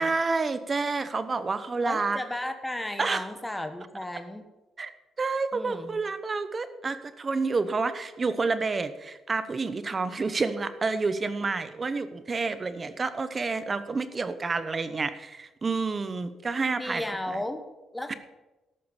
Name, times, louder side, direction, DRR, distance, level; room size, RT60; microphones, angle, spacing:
voice 1, 0.0-2.2 3.0-3.2 4.8-4.9 5.2-17.4 18.1-18.2, right 4 dB, 35° right, 12 dB, 0.9 m, -29 dB
voice 2, 1.8-4.5 5.5-6.0 16.8-17.7 17.9-18.1, left 1 dB, 10° left, 7 dB, 1.3 m, -34 dB
14.0 x 5.8 x 7.2 m, 1.1 s
cardioid pair, 90°, 0 cm